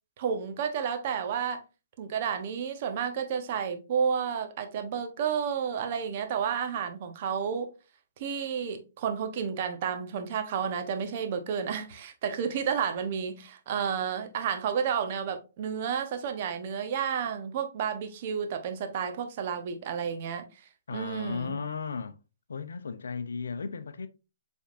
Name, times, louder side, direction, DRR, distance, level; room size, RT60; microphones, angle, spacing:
voice 1, 0.2-1.6 2.0-7.7 8.2-20.4 20.9-21.6, right 7 dB, 45° right, 0.9 m, -31 dB
voice 2, 20.9-22.2 22.5-24.1, left 5 dB, 85° left, 0.5 m, -35 dB
5.2 x 3.4 x 2.5 m
hypercardioid pair, 145°, 0 cm